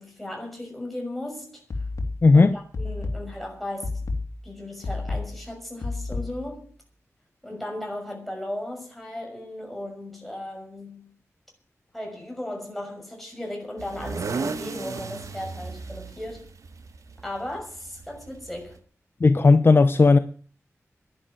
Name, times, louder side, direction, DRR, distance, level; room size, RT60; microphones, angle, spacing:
voice 1, 0.0-1.6 2.3-4.0 4.4-6.7 7.4-11.1 11.9-16.5 17.2-18.8, left 1 dB, ahead, 6.3 m, -36 dB
sound 1, 1.7-6.7, left 3 dB, 80° left, 2.8 m, -32 dB
voice 2, 2.2-2.5 19.2-20.2, left 3 dB, 45° left, 0.8 m, -15 dB
sound 2, 13.8-18.8, right 4 dB, 80° right, 1.4 m, -35 dB
11.5 x 11.0 x 9.2 m
wide cardioid pair, 120°, 5 cm